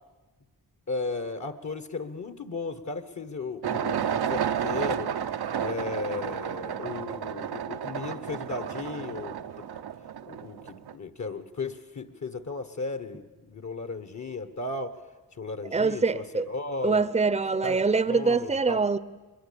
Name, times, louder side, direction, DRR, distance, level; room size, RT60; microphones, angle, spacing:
voice 1, 0.9-5.1 5.6-9.7 10.3-15.0 15.4-17.1 17.6-17.8 18.1-18.8, left 3 dB, 45° left, 1.3 m, -35 dB
sound 1, 3.6-10.9, right 8 dB, 80° right, 0.9 m, -32 dB
voice 2, 15.7-16.5 16.8-19.0, right 4 dB, 15° right, 0.7 m, -24 dB
23.0 x 21.5 x 8.7 m
cardioid pair, 75°, 38 cm